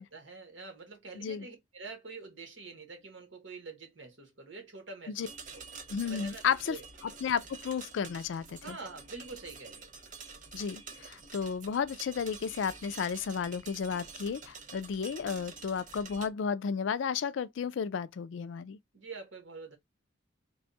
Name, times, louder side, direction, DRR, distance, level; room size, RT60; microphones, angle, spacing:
voice 1, 0.0-5.3 5.5-5.6 6.1-6.9 8.6-9.9 18.9-19.8, right 3 dB, 70° right, 1.3 m, -46 dB
voice 2, 1.2-1.5 5.1-5.3 5.9-6.8 7.0-8.8 10.5-18.8, left 6 dB, 70° left, 0.3 m, -33 dB
sound 1, 5.2-16.3, right 4 dB, 40° right, 0.7 m, -48 dB
3.5 x 2.3 x 3.9 m
head